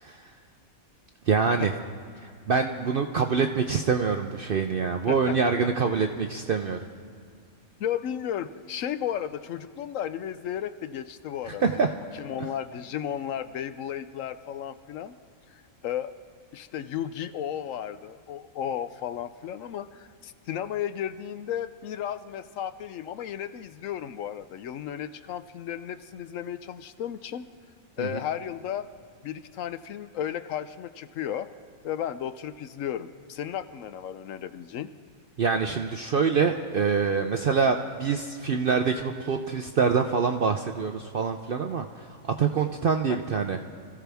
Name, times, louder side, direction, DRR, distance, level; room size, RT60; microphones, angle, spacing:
voice 1, 1.3-1.7 2.2-6.8 11.5-12.0 28.0-28.1 35.4-43.6, right 5 dB, 60° right, 5 dB, 0.6 m, -25 dB
voice 2, 5.1-5.5 5.9-6.0 7.8-11.9 12.1-15.1 15.5-16.1 16.5-27.4 28.0-28.9 29.2-31.5 31.8-34.9 43.1-43.2, left 10 dB, 70° left, 12 dB, 0.9 m, -34 dB
25.0 x 15.0 x 3.5 m, 2.2 s
omnidirectional pair, 1.5 m